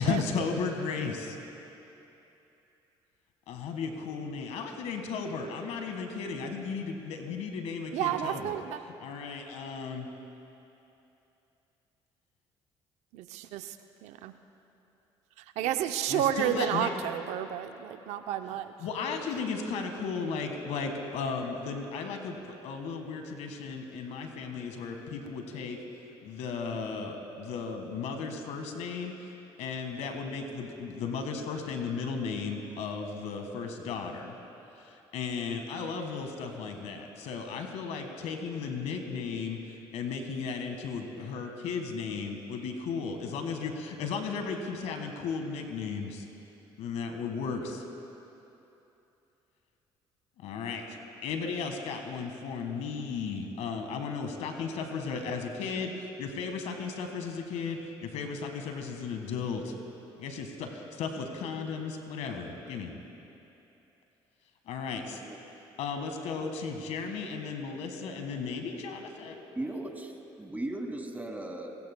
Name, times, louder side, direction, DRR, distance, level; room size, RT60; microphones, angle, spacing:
voice 1, 0.0-1.3 3.5-8.5 9.0-10.1 16.1-16.9 18.8-25.8 26.2-29.3 29.6-34.3 34.8-46.2 46.8-47.8 50.4-59.7 60.2-62.9 64.7-65.2 65.8-69.4, left 5 dB, 75° left, 5 dB, 1.6 m, -35 dB
voice 2, 7.9-8.8 13.1-13.8 14.0-14.3 15.4-18.7, right 11 dB, 80° right, 9 dB, 0.6 m, -31 dB
voice 3, 69.5-71.8, right 1 dB, 15° right, 2 dB, 2.3 m, -37 dB
25.0 x 18.5 x 2.2 m, 2.9 s
supercardioid pair, 65°, 11 cm